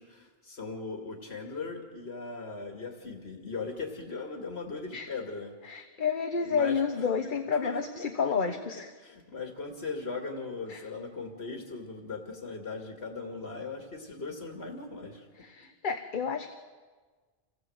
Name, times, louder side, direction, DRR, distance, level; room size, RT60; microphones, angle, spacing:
voice 1, 0.0-5.5 6.4-7.3 7.6-8.5 9.0-15.3, left 3 dB, 85° left, 3 dB, 2.4 m, -39 dB
voice 2, 5.6-8.9 10.7-10.8 15.4-16.6, left 6 dB, 55° left, 7 dB, 1.2 m, -30 dB
27.5 x 17.0 x 7.8 m, 1.4 s
omnidirectional pair, 1.0 m